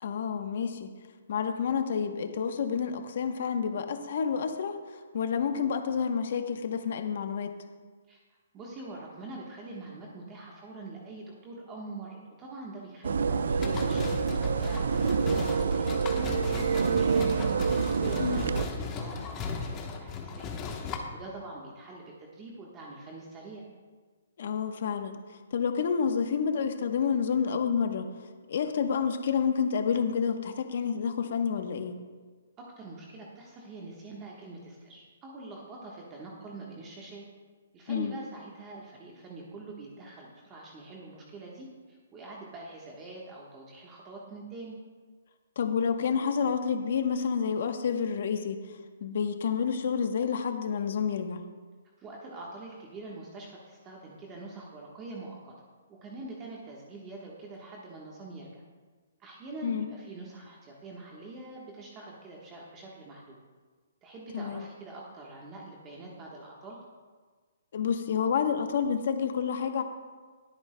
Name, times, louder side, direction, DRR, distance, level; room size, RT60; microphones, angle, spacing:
voice 1, 0.0-0.9 1.3-7.5 18.2-18.4 24.4-25.2 25.5-28.1 28.5-32.0 37.9-38.1 45.6-48.6 49.0-51.4 59.6-59.9 64.3-64.6 67.7-69.8, left 6 dB, 55° left, 7 dB, 0.9 m, -29 dB
voice 2, 8.5-17.6 18.0-20.5 21.1-23.7 32.6-37.2 37.7-44.8 52.0-55.5 55.9-58.6 59.2-63.4 64.0-66.8, right 2 dB, 20° right, -3 dB, 1.2 m, -44 dB
sound 1, 13.0-18.7, right 5 dB, 75° right, 0.4 m, -27 dB
sound 2, 13.6-21.0, left 5 dB, 20° left, 1.0 m, -37 dB
21.0 x 8.6 x 2.2 m, 1.5 s
hypercardioid pair, 160°, 0 cm